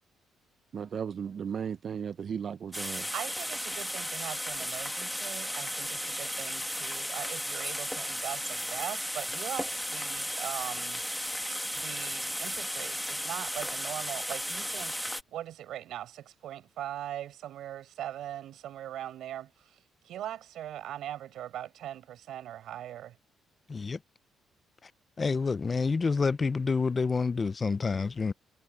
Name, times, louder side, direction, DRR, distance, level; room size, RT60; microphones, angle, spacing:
voice 1, 0.7-3.1, right 7 dB, 55° right, 0.6 m, -35 dB
sound 1, 2.7-15.2, equal, ahead, 1.7 m, -35 dB
voice 2, 3.1-11.0 11.7-15.0 15.3-19.5 20.0-23.1, right 12 dB, 80° right, 4.9 m, -40 dB
voice 3, 23.7-24.0 24.8-24.9 25.2-28.3, left 4 dB, 35° left, 0.5 m, -28 dB
cardioid pair, 90°, 0 cm